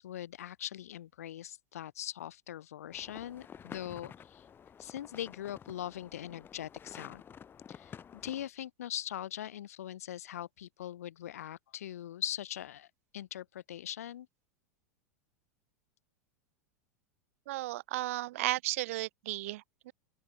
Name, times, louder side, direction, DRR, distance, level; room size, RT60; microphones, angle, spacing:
voice 1, 0.0-4.4 4.8-7.2 7.7-12.9 13.1-14.3, left 11 dB, 65° left, 3.1 m, -41 dB
sound 1, 2.9-8.5, left 7 dB, 25° left, 5.5 m, -51 dB
voice 2, 17.5-19.9, right 17 dB, 60° right, 1.5 m, -34 dB
open air
figure-of-eight pair, 90°, 9 cm